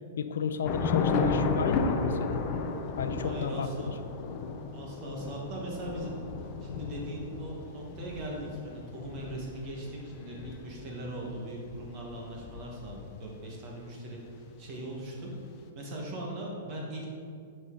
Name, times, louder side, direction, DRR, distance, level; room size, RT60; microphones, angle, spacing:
voice 1, 0.2-2.4 3.0-4.0, left 6 dB, 85° left, 9 dB, 0.5 m, -32 dB
Thunder / Rain, 0.6-13.2, left 4 dB, 30° left, 0.5 m, -34 dB
voice 2, 3.2-4.0 4.7-6.2 6.6-15.3 15.7-17.2, right 1 dB, 25° right, -2 dB, 1.3 m, -39 dB
10.0 x 5.3 x 3.8 m, 2.4 s
supercardioid pair, 175°, 0 cm